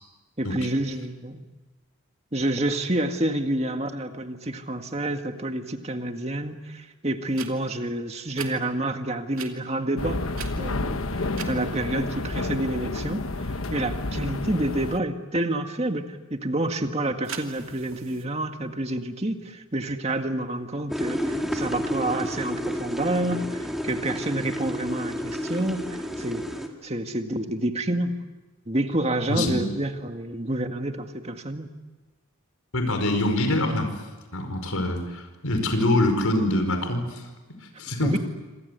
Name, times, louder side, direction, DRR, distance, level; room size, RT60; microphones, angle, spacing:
voice 1, 0.4-1.5 2.3-10.2 10.6-13.3 13.7-26.4 26.8-28.1 28.7-31.7 38.0-38.2, right 1 dB, 30° right, 6 dB, 1.9 m, -28 dB
sound 1, 7.3-7.5 8.3-8.5 9.3-9.5 10.3-10.9 11.3-11.5 17.2-18.3, right 7 dB, 65° right, 2.8 m, -38 dB
sound 2, 10.0-15.0, left 2 dB, 70° left, 1.2 m, -30 dB
sound 3, 20.9-26.7, equal, ahead, 2.5 m, -30 dB
voice 2, 29.3-29.7 32.7-33.9 34.3-37.2 37.8-38.2, left 1 dB, 85° left, 7 dB, 4.9 m, -24 dB
27.5 x 26.0 x 8.3 m, 1.2 s
head